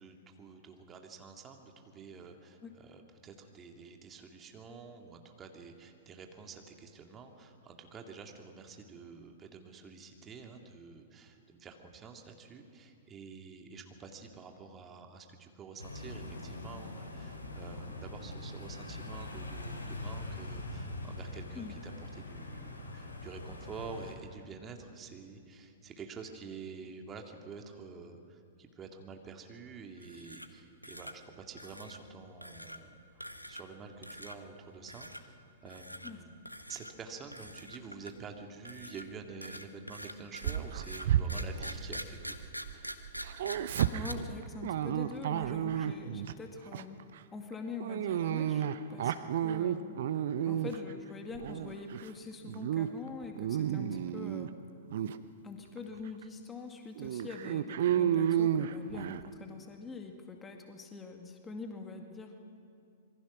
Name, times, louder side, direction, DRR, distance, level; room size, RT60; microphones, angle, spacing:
voice 1, 0.0-36.3 36.7-42.4, right 5 dB, 20° right, 3 dB, 2.2 m, -48 dB
sound 1, 15.8-24.1, left 2 dB, 70° left, 4.9 m, -43 dB
sound 2, 30.0-30.6 30.8-31.1 31.6-32.0 32.4-32.8 33.2-33.7 34.0-34.4 34.9-35.2 35.7-36.1 36.5-36.9 37.3-38.2 38.7-44.1, equal, 90° left, 1.2 m, -44 dB
Dog, 40.4-42.7 43.0-46.3 46.7-47.0 47.8-50.9 51.3-52.1 52.5-52.9 53.2-54.5 54.9-55.2 55.8-55.9 56.2-56.3 57.0-59.3, right 10 dB, 50° right, 0.9 m, -31 dB
voice 2, 43.9-47.0 47.3-49.1 49.4-50.0 50.5-54.6 55.4-62.5, left 4 dB, 15° left, 4 dB, 1.9 m, -44 dB
26.5 x 22.5 x 6.1 m, 2.3 s
figure-of-eight pair, 105°, 0 cm